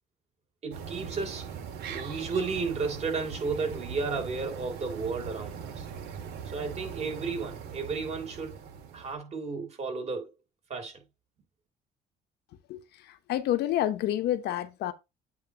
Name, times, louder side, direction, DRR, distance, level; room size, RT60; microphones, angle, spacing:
voice 1, 0.6-1.5 1.9-5.9 6.4-8.6 8.9-10.3 10.7-11.0, right 4 dB, 40° right, 3.3 m, -33 dB
sound 1, 0.7-9.1, right 7 dB, 75° right, 1.8 m, -40 dB
voice 2, 12.7-14.9, left 12 dB, 75° left, 1.0 m, -29 dB
8.5 x 3.2 x 5.0 m
cardioid pair, 110°, 17 cm